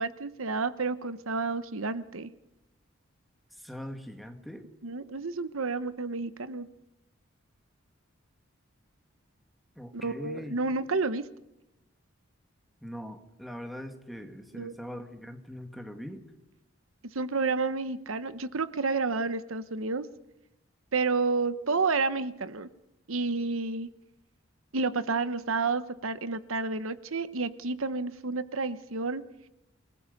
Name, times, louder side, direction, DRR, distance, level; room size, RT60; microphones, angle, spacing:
voice 1, 0.0-2.3 4.8-6.7 9.9-11.2 14.6-14.7 17.1-20.1 20.9-22.7 23.1-23.9 24.7-29.2, right 4 dB, 80° right, 13 dB, 1.0 m, -30 dB
voice 2, 3.5-4.7 9.8-10.6 12.8-16.2, equal, ahead, 5 dB, 1.9 m, -41 dB
28.5 x 19.5 x 5.4 m, 0.89 s
head